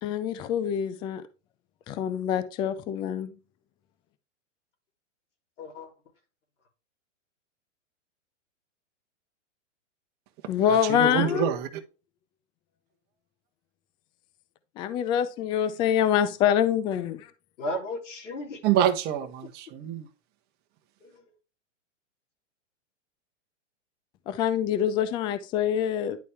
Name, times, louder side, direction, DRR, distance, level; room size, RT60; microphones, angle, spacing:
voice 1, 0.0-1.2 1.9-3.3 10.5-11.5 14.8-17.3 24.3-26.2, left 9 dB, 15° left, 0.3 m, -25 dB
voice 2, 5.6-5.9 11.1-11.5 17.6-18.6 21.0-21.3, left 1 dB, 75° left, 3.3 m, -35 dB
voice 3, 10.7-11.7 18.6-20.1, right 10 dB, 25° right, 1.0 m, -26 dB
10.5 x 4.1 x 3.4 m
hypercardioid pair, 140°, 37 cm